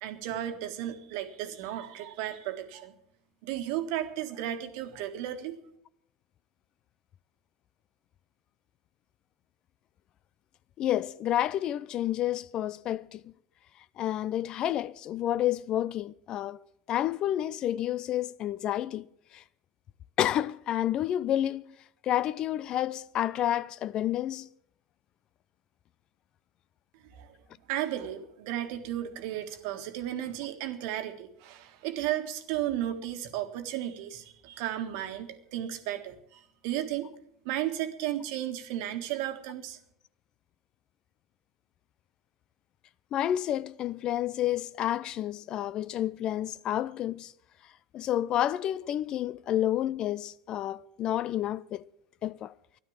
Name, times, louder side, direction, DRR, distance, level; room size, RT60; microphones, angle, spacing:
voice 1, 0.0-2.9 3.4-5.6 27.2-27.3 27.7-37.1 37.4-39.8, right 12 dB, 55° right, 1.5 m, -34 dB
voice 2, 10.8-13.2 14.0-16.6 16.9-19.1 19.3-19.4 20.2-21.6 22.0-24.5 43.1-47.3 47.9-51.8 52.2-52.5, left 12 dB, 40° left, 0.4 m, -30 dB
13.0 x 11.5 x 7.2 m
figure-of-eight pair, 80°, 2 cm